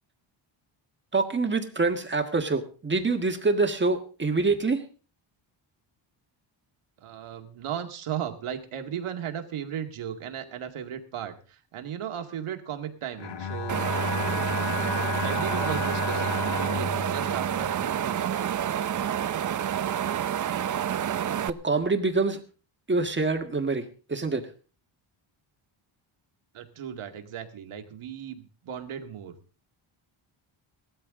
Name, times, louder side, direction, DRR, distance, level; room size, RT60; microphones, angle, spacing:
voice 1, 1.1-4.9 21.4-22.4 22.9-24.5, right 3 dB, 20° right, 6 dB, 1.6 m, -26 dB
voice 2, 7.0-13.8 15.2-18.7 26.5-29.4, right 9 dB, 80° right, 5 dB, 2.2 m, -36 dB
Bowed string instrument, 13.2-18.5, left 6 dB, 60° left, 1.4 m, -33 dB
Wind, 13.7-21.5, right 9 dB, 40° right, 0.6 m, -28 dB
18.0 x 13.5 x 3.7 m, 0.37 s
wide cardioid pair, 155°, 49 cm